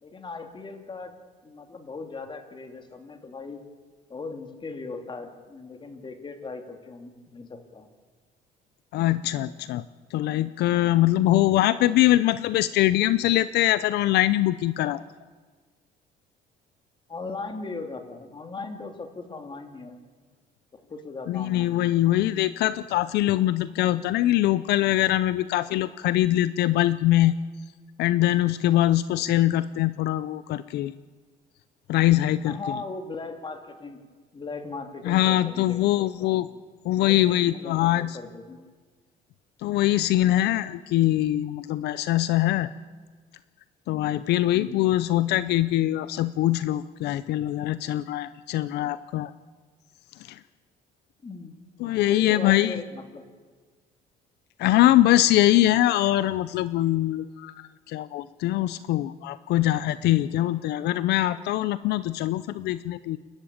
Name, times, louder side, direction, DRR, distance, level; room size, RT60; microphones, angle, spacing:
voice 1, 0.0-1.1 1.4-3.6 4.1-7.9 17.1-20.0 20.7-21.8 32.4-34.0 34.3-36.5 37.0-38.6 44.5-45.0 51.2-51.5 52.0-53.2 55.2-55.4, left 3 dB, 30° left, 6 dB, 2.7 m, -38 dB
voice 2, 8.9-9.8 10.1-15.0 21.3-27.3 28.0-30.9 31.9-32.6 35.0-36.5 36.8-38.2 39.6-42.7 43.9-49.3 50.3-50.4 51.8-52.8 54.6-63.2, left 14 dB, 80° left, 15 dB, 0.6 m, -23 dB
29.0 x 13.0 x 8.7 m, 1.5 s
cardioid pair, 110°, 17 cm